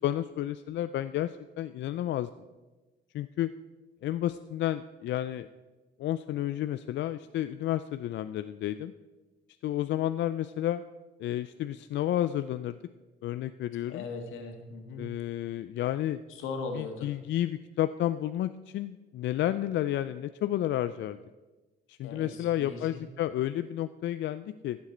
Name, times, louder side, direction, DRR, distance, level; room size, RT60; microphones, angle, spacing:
voice 1, 0.0-2.3 3.1-3.5 4.0-5.5 6.0-8.9 9.6-10.8 11.2-12.8 13.2-14.1 15.0-16.2 16.7-21.2 21.9-24.8, left 12 dB, 65° left, 12 dB, 0.4 m, -31 dB
voice 2, 13.9-15.0 16.3-17.1 22.0-23.0, left 4 dB, 90° left, 4 dB, 1.7 m, -39 dB
14.5 x 7.4 x 4.4 m, 1.2 s
cardioid pair, 90°, 20 cm